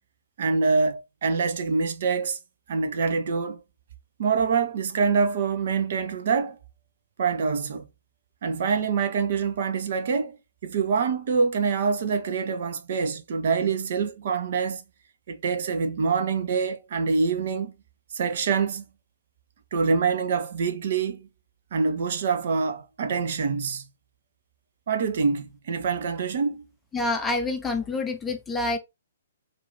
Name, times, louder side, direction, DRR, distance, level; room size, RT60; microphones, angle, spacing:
voice 1, 0.4-2.4 2.7-3.6 4.2-6.6 7.2-7.9 8.4-10.4 10.6-14.8 15.3-17.7 18.1-18.9 19.7-21.3 21.7-23.8 24.9-26.6, right 5 dB, 50° right, 0.7 m, -25 dB
voice 2, 26.9-28.8, left 2 dB, 10° left, 0.5 m, -27 dB
4.6 x 2.6 x 3.7 m
figure-of-eight pair, 120°, 0 cm